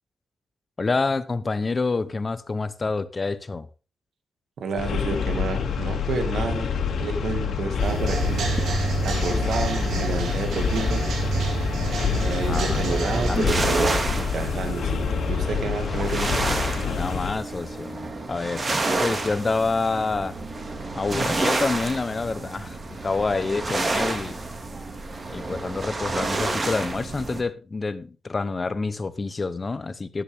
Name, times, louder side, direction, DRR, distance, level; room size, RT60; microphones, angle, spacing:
voice 1, 0.8-3.7 12.5-12.8 13.1-13.5 16.4-16.6 16.9-20.4 20.9-24.4 25.3-30.2, left 3 dB, 25° left, 0.8 m, -28 dB
voice 2, 4.6-6.7 7.0-8.5 9.0-11.0 12.2-16.4, right 4 dB, 65° right, 2.1 m, -30 dB
sound 1, 4.8-17.3, left 6 dB, 70° left, 2.3 m, -27 dB
sound 2, 7.8-13.4, right 3 dB, 85° right, 3.6 m, -28 dB
sound 3, 12.4-27.4, right 2 dB, 30° right, 2.0 m, -29 dB
13.5 x 11.5 x 3.5 m
wide cardioid pair, 170°, 0 cm